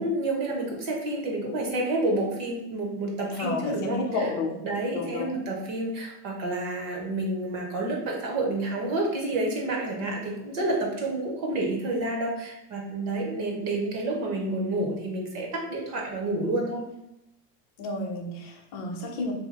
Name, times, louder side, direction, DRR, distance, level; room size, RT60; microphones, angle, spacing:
voice 1, 0.0-4.3 4.6-16.8, right 2 dB, 40° right, 0 dB, 0.7 m, -29 dB
voice 2, 3.3-4.6 4.9-5.3 17.8-19.3, left 2 dB, 40° left, 0 dB, 0.7 m, -31 dB
2.7 x 2.6 x 3.9 m, 0.85 s
cardioid pair, 175°, 45 cm